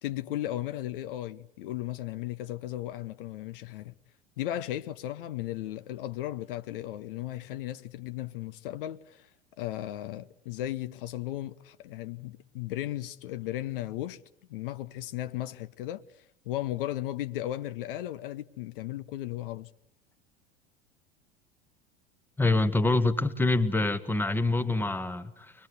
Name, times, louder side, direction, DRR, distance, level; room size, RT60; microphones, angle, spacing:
voice 1, 0.0-3.9 4.4-9.3 9.6-14.2 14.5-19.7, left 14 dB, 60° left, 0.9 m, -36 dB
voice 2, 22.4-25.5, left 2 dB, 5° left, 1.4 m, -26 dB
24.5 x 21.0 x 8.1 m
figure-of-eight pair, 75°, 31 cm